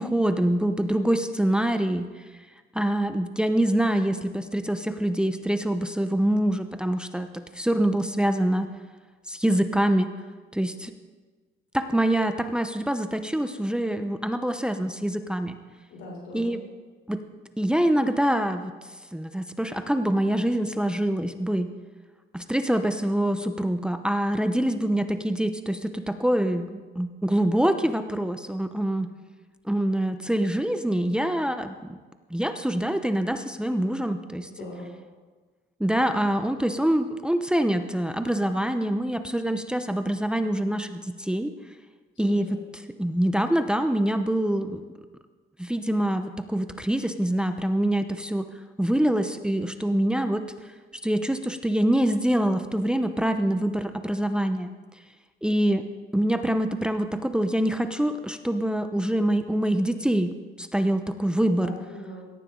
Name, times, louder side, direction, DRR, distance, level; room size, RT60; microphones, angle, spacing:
voice 1, 0.0-2.1 2.7-8.7 9.3-10.1 10.5-10.9 11.7-15.6 16.3-16.6 17.1-17.2 17.6-18.7 19.1-21.7 22.3-29.1 29.6-32.0 32.3-34.5 35.8-41.5 42.2-42.6 43.0-44.8 45.6-48.5 48.8-50.4 51.0-54.7 55.4-55.9 56.1-61.7, right 1 dB, 5° right, 8 dB, 0.7 m, -25 dB
voice 2, 15.9-16.6 34.4-34.9 42.2-42.4 61.5-62.3, left 1 dB, 85° left, -2 dB, 5.7 m, -40 dB
17.5 x 14.0 x 3.8 m, 1.4 s
cardioid pair, 90°, 20 cm